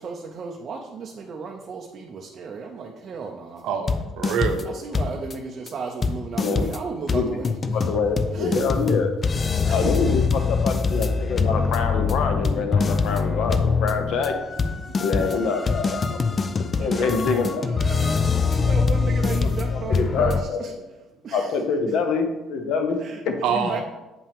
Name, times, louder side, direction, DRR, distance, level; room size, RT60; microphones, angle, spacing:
voice 1, 0.0-3.6 4.6-7.8 8.3-8.6 9.5-10.1 15.2-15.4 16.8-20.7 21.2-21.7 23.0-23.2 23.7-23.8, right 5 dB, 35° right, 1 dB, 0.6 m, -34 dB
voice 2, 3.6-4.7 16.2-16.6 23.4-23.8, right 6 dB, 60° right, 4 dB, 0.8 m, -26 dB
sound 1, 3.9-4.7 4.9-5.3 5.7-5.8 6.0-20.4, left 5 dB, 20° left, 0.3 m, -24 dB
voice 3, 7.1-9.1 9.7-14.3 15.0-16.0 16.3-16.5 16.8-17.6 19.4-20.6 21.3-23.0 23.2-23.8, left 4 dB, 55° left, 6 dB, 0.9 m, -25 dB
8.5 x 5.5 x 3.5 m, 1.1 s
cardioid pair, 180°, 0 cm